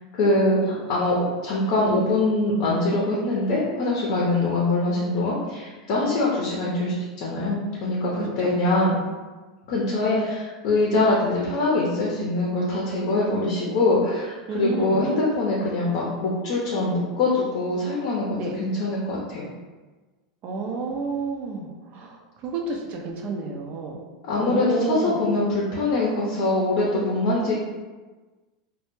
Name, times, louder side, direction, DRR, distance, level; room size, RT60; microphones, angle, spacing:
voice 1, 0.1-1.2 1.4-9.0 9.7-19.4 24.3-27.5, left 2 dB, 55° left, -4 dB, 0.6 m, -23 dB
voice 2, 8.2-8.5 14.5-15.1 18.4-18.5 20.4-22.2 22.4-24.0 24.4-25.2, right 4 dB, 45° right, 1 dB, 0.5 m, -30 dB
2.2 x 2.1 x 3.0 m, 1.3 s
hypercardioid pair, 115°, 3 cm